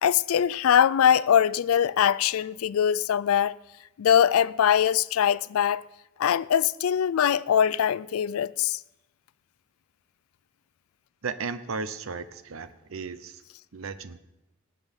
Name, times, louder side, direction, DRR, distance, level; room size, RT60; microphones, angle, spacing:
voice 1, 0.0-3.6 4.0-5.8 6.2-8.8, left 9 dB, 85° left, 0.4 m, -22 dB
voice 2, 11.2-13.4 13.7-14.2, right 4 dB, 75° right, 0.7 m, -35 dB
18.5 x 7.7 x 5.3 m
head